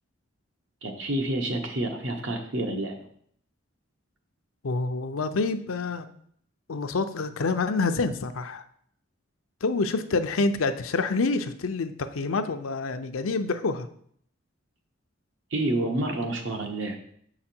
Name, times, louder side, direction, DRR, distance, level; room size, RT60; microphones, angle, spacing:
voice 1, 0.8-3.0 15.5-17.0, right 1 dB, 70° right, 3 dB, 1.1 m, -28 dB
voice 2, 4.6-6.1 6.7-8.6 9.6-13.9, left 3 dB, 85° left, 9 dB, 0.6 m, -27 dB
6.8 x 4.9 x 4.4 m, 0.64 s
head